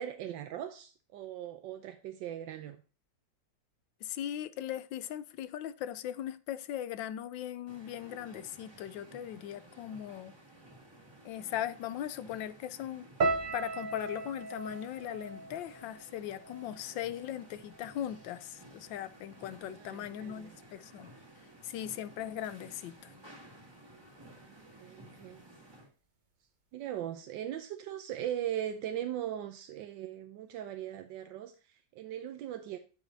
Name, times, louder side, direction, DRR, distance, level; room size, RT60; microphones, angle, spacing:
voice 1, 0.0-2.8 19.6-20.5 24.3-25.4 26.7-32.8, right 11 dB, 85° right, 1.4 m, -39 dB
voice 2, 4.0-10.4 11.2-13.1 13.5-21.1 21.6-23.1, left 11 dB, 90° left, 1.4 m, -39 dB
sound 1, 7.7-25.9, right 1 dB, 15° right, 1.5 m, -55 dB
sound 2, 13.2-17.4 17.7-18.4 19.0-19.3, right 3 dB, 45° right, 0.6 m, -37 dB
12.5 x 5.0 x 2.7 m
omnidirectional pair, 2.0 m